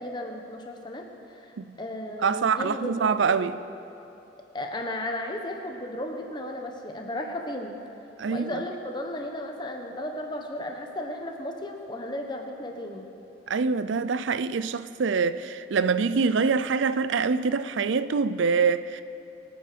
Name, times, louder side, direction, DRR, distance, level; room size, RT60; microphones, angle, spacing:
voice 1, 0.0-3.5 4.5-7.8 8.3-13.0, left 1 dB, 25° left, 1.2 m, -35 dB
voice 2, 2.2-3.6 8.2-8.5 13.5-19.0, right 5 dB, 80° right, 0.5 m, -25 dB
24.5 x 9.1 x 5.1 m
head